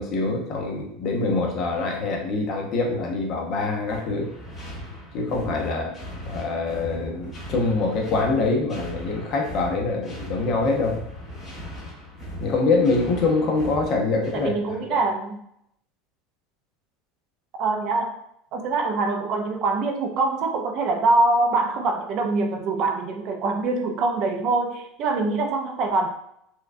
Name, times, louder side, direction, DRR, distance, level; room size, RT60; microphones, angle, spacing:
voice 1, 0.0-4.3 5.1-5.9 6.3-11.0 12.4-15.0, left 3 dB, 40° left, 1 dB, 0.7 m, -24 dB
sound 1, 3.9-14.6, equal, 20° left, 1.5 m, -38 dB
voice 2, 14.3-15.4 17.6-18.2 18.5-26.1, right 3 dB, 40° right, 3 dB, 0.4 m, -24 dB
4.4 x 2.3 x 2.6 m, 0.74 s
supercardioid pair, 160°, 0 cm